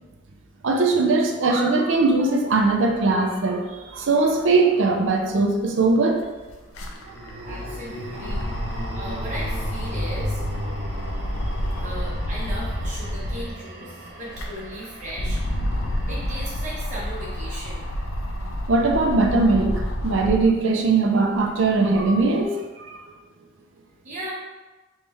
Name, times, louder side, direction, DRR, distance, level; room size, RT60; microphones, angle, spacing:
voice 1, 0.6-3.6 3.9-6.2 18.7-23.0, right 3 dB, 70° right, 2 dB, 0.5 m, -20 dB
sound 1, 3.3-5.2 6.8-19.1, right 1 dB, 55° right, 0.9 m, -37 dB
sound 2, 5.4-5.5 5.8-13.6 14.1-20.6 21.1-22.2, equal, 85° left, 0.5 m, -29 dB
voice 2, 7.4-10.4 11.7-15.4 16.1-17.9 24.0-24.3, right 1 dB, 35° right, -6 dB, 1.1 m, -37 dB
3.2 x 3.1 x 3.3 m, 1.2 s
head